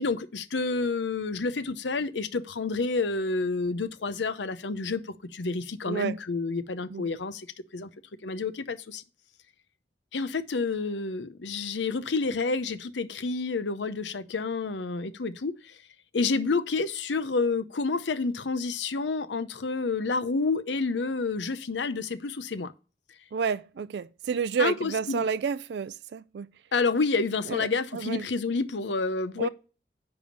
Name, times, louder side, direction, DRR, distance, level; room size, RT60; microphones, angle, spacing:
voice 1, 0.0-7.5 7.7-7.9 8.2-9.0 10.1-15.8 16.1-22.7 24.6-25.2 26.7-29.5, left 4 dB, 85° left, 0.7 m, -29 dB
voice 2, 5.9-6.2 6.9-7.1 23.3-26.5 27.5-28.3 29.4-29.5, right 6 dB, 70° right, 0.3 m, -30 dB
10.0 x 3.5 x 6.9 m
head